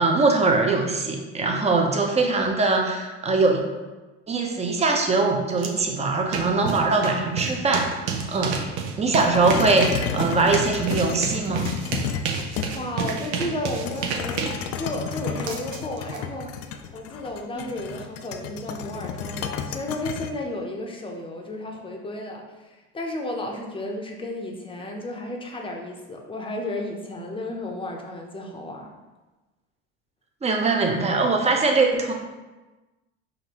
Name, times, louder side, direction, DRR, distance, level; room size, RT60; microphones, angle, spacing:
voice 1, 0.0-3.6 4.3-8.6 9.0-11.6 16.1-16.2 17.6-17.7 30.4-32.1, right 3 dB, 20° right, 2 dB, 0.7 m, -22 dB
sound 1, 5.6-5.7 6.0-16.2, right 5 dB, 80° right, 0.7 m, -30 dB
sound 2, 9.3-13.0 13.7-20.3, left 8 dB, 50° left, 0.4 m, -32 dB
voice 2, 12.7-14.5 14.8-16.5 16.9-28.9, left 1 dB, 15° left, 1 dB, 0.7 m, -33 dB
5.0 x 2.7 x 2.9 m, 1.2 s
supercardioid pair, 90°, 33 cm